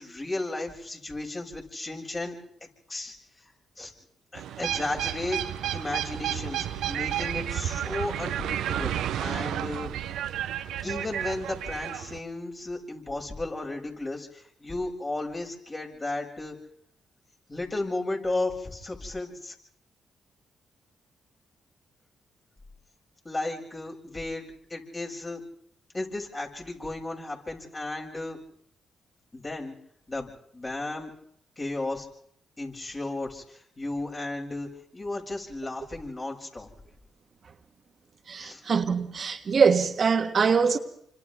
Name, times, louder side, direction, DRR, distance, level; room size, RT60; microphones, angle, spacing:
voice 1, 0.0-2.4 2.9-3.2 3.8-3.9 4.3-5.4 5.7-9.9 10.8-16.6 17.5-19.5 23.2-24.4 24.7-25.4 25.9-28.4 29.3-29.8 30.1-31.1 31.6-32.1 32.6-36.7 38.4-38.6, left 2 dB, 35° left, 6.9 m, -34 dB
sound 1, 4.3-12.2, right 11 dB, 80° right, 0.8 m, -31 dB
voice 2, 38.3-40.8, right 5 dB, 55° right, 1.7 m, -23 dB
28.5 x 26.0 x 3.7 m
supercardioid pair, 55°, 0 cm